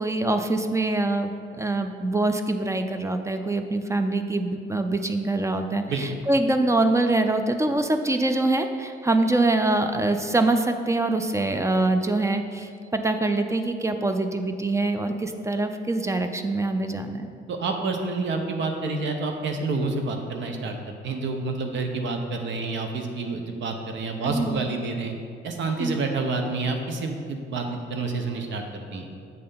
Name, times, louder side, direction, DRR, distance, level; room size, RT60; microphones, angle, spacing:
voice 1, 0.0-1.3 1.6-17.3 24.2-24.6 25.8-26.0, right 2 dB, 15° right, 7 dB, 0.4 m, -24 dB
voice 2, 17.5-20.8 21.0-25.1 25.4-28.6 28.9-29.0, right 3 dB, 70° right, 4 dB, 0.8 m, -28 dB
7.7 x 3.3 x 5.5 m, 2.3 s
cardioid pair, 90°, 20 cm